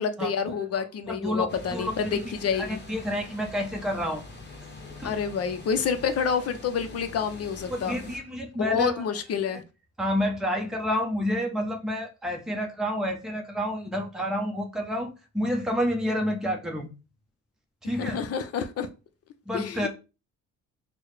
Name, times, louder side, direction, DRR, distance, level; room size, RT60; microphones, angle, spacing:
voice 1, 0.0-2.8 5.0-8.0 8.6-9.6 18.0-18.9 19.5-19.9, left 6 dB, 50° left, 0.6 m, -28 dB
voice 2, 1.1-2.2 2.6-4.2 5.0-5.1 7.7-8.9 10.0-16.9 17.8-18.2 19.5-19.9, equal, ahead, 0.7 m, -29 dB
sound 1, 1.5-8.2, left 2 dB, 35° left, 1.1 m, -44 dB
4.5 x 2.2 x 3.2 m
cardioid pair, 90°, 30 cm